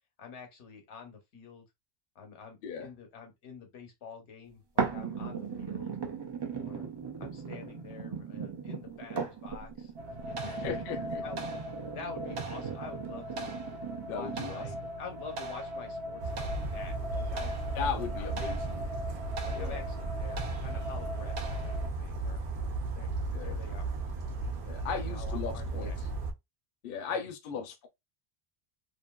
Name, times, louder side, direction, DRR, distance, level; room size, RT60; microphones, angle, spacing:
voice 1, 0.2-1.6 2.1-6.0 6.5-6.9 7.2-11.6 11.9-13.5 14.0-17.5 17.8-18.9 19.4-21.4 21.6-22.4 22.8-23.1 23.4-23.9 24.4-26.2 27.1-27.2 27.5-27.6, left 5 dB, 85° left, 1.1 m, -48 dB
sound 1, 4.8-14.8 15.3-15.4, right 6 dB, 45° right, 0.3 m, -38 dB
sound 2, 10.0-21.9, right 1 dB, 85° right, 0.9 m, -39 dB
voice 2, 10.4-11.2 14.1-14.6 17.7-18.9 19.5-19.9 23.3-23.6 24.7-25.9 26.8-27.9, left 6 dB, 65° left, 0.7 m, -37 dB
Bird vocalization bird call bird song, 16.2-26.3, right 3 dB, 60° right, 0.7 m, -35 dB
2.6 x 2.5 x 2.2 m
omnidirectional pair, 1.1 m